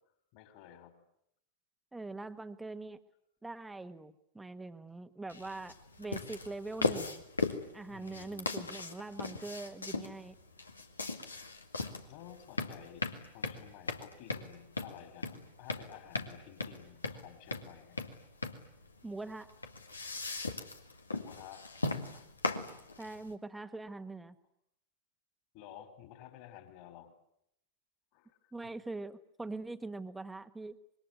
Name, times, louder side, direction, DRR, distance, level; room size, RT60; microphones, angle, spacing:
voice 1, 0.3-0.9 7.9-8.6 12.1-18.0 21.2-21.7 25.5-27.1 28.1-28.5, left 11 dB, 45° left, 9 dB, 4.7 m, -53 dB
voice 2, 1.9-3.0 3.4-7.2 7.7-10.3 19.0-19.5 23.0-24.3 28.5-30.8, right 3 dB, 10° right, 11 dB, 1.5 m, -43 dB
sound 1, 5.3-23.3, left 3 dB, 80° left, 2.0 m, -38 dB
26.0 x 22.5 x 9.5 m, 0.78 s
figure-of-eight pair, 90°, 0 cm